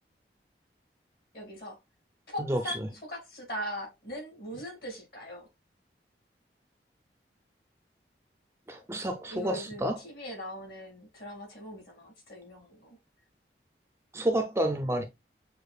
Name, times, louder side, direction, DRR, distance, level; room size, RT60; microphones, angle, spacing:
voice 1, 1.3-1.8 2.3-5.5 9.3-13.0, equal, 60° left, 2.4 m, -40 dB
voice 2, 2.4-2.9 8.7-10.0 14.1-15.0, right 1 dB, 15° right, 0.5 m, -30 dB
6.6 x 2.6 x 2.3 m
head